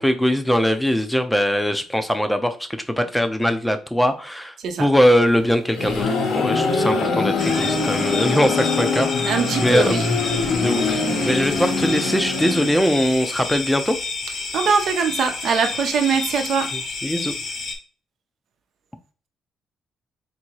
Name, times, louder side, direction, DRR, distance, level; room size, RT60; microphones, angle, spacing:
voice 1, 0.0-9.3 9.6-10.2 10.5-14.0 17.0-17.3, equal, ahead, 0.6 m, -21 dB
sound 1, 5.4-13.1, left 4 dB, 80° left, 1.1 m, -23 dB
sound 2, 7.4-17.8, left 4 dB, 55° left, 1.2 m, -30 dB
voice 2, 9.3-10.1 14.5-16.7, right 6 dB, 65° right, 0.8 m, -22 dB
3.6 x 2.8 x 4.6 m
cardioid pair, 90°, 0 cm